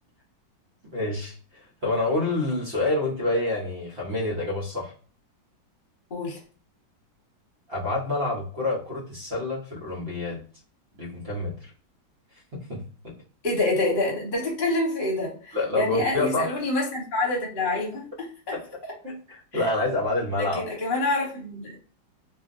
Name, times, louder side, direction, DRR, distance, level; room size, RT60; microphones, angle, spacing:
voice 1, 0.9-4.9 7.7-10.4 11.0-11.5 12.7-13.1 15.5-16.5 18.5-18.6 19.0-20.6, left 2 dB, 45° right, -4 dB, 0.9 m, -27 dB
voice 2, 13.4-18.0 19.5-19.6 20.3-21.8, left 2 dB, 35° left, -3 dB, 1.1 m, -27 dB
2.8 x 2.6 x 2.5 m, 0.41 s
omnidirectional pair, 1.9 m